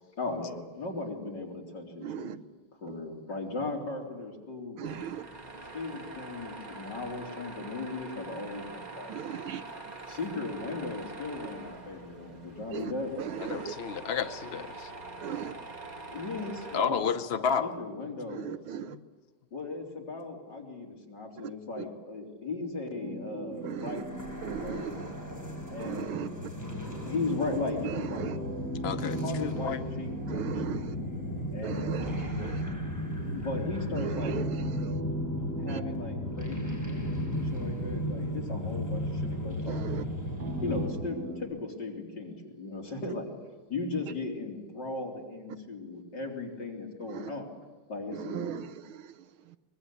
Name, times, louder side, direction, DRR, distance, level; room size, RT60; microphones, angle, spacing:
voice 1, 0.2-2.3 2.8-5.1 5.7-9.1 10.1-13.1 16.1-18.6 19.5-24.1 24.6-24.8 25.7-26.3 26.9-28.4 29.0-30.8 31.5-32.2 33.3-34.5 35.6-39.9 40.6-43.3 43.7-47.5 47.9-48.7, left 3 dB, 50° left, 4.3 m, -37 dB
voice 2, 2.0-2.4 4.8-5.3 9.1-9.6 12.7-13.7 15.2-15.5 18.3-19.0 21.4-21.9 23.6-24.0 24.4-25.1 25.8-26.3 27.8-28.4 30.3-31.0 31.6-32.8 33.9-35.0 35.7-35.8 39.7-40.1 47.1-47.3 48.1-49.6, right 9 dB, 75° right, 1.7 m, -38 dB
Tools, 4.8-16.8, right 3 dB, 20° right, 1.6 m, -44 dB
voice 3, 13.4-14.9 16.7-17.7 28.8-29.8, left 6 dB, 75° left, 0.5 m, -31 dB
sound 1, 23.0-41.4, right 1 dB, 50° right, 4.2 m, -43 dB
sound 2, 23.7-40.9, equal, 10° left, 5.3 m, -35 dB
24.0 x 21.0 x 8.5 m
omnidirectional pair, 2.4 m